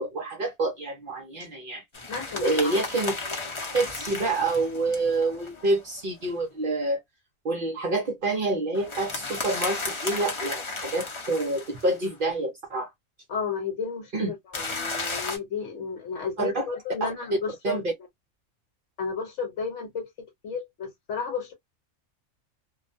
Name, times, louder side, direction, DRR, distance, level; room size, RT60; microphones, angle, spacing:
voice 1, 0.0-1.8 2.4-3.1 3.7-7.0 7.4-12.9 14.1-14.3 16.4-16.7 17.0-17.1 17.6-17.9, right 2 dB, 50° right, 0.7 m, -27 dB
sound 1, 1.9-6.3 8.7-12.1 14.5-15.4, left 3 dB, 35° left, 0.5 m, -34 dB
voice 2, 2.1-2.8 13.3-17.8 19.0-20.1 20.4-21.5, left 5 dB, 65° left, 1.1 m, -33 dB
2.4 x 2.1 x 2.5 m
omnidirectional pair, 1.4 m